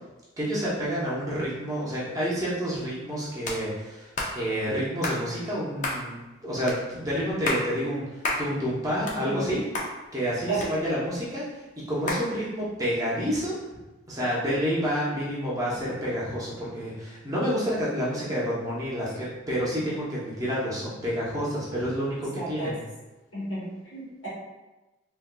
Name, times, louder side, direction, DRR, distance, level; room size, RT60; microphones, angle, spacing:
voice 1, 0.4-9.6 10.1-11.4 11.9-13.8 14.1-22.8, equal, 15° right, -7 dB, 0.7 m, -29 dB
sound 1, 3.4-3.6 4.2-4.3 5.0-5.2 5.8-6.0 6.7-6.8 7.3-7.7 8.2-8.4 8.8-9.5 9.7-9.9 10.6-11.2 12.1-12.3, left 2 dB, 40° left, 0.5 m, -30 dB
voice 2, 22.4-22.7 23.3-24.3, right 2 dB, 65° left, -7 dB, 1.4 m, -32 dB
3.7 x 2.5 x 2.2 m, 1.1 s
head